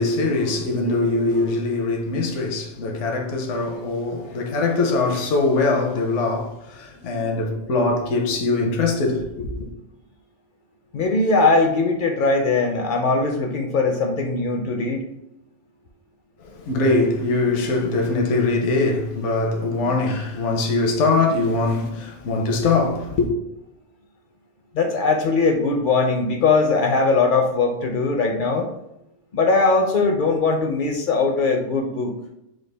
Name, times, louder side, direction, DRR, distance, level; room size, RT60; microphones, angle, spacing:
voice 1, 0.0-9.7 16.4-23.3, left 3 dB, 80° left, 1.0 m, -22 dB
voice 2, 10.9-15.0 24.7-28.7 29.3-32.1, left 3 dB, 60° left, 0.6 m, -20 dB
4.8 x 2.3 x 3.3 m
omnidirectional pair, 1.2 m